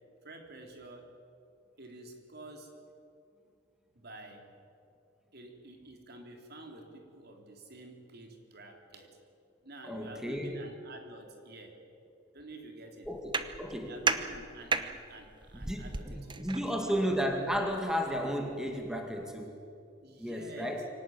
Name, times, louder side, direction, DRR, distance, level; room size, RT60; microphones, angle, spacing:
voice 1, 0.2-1.2 1.8-2.7 3.9-4.6 5.3-9.2 9.6-11.8 12.3-13.1 13.8-16.9 20.0-20.8, right 2 dB, 55° right, 3 dB, 3.4 m, -49 dB
voice 2, 9.8-10.6 13.1-14.0 15.5-19.6 20.2-20.9, equal, 5° right, 3 dB, 2.4 m, -33 dB
sound 1, 13.0-19.3, right 4 dB, 25° right, 1.0 m, -37 dB
24.0 x 18.0 x 9.6 m, 2.5 s
head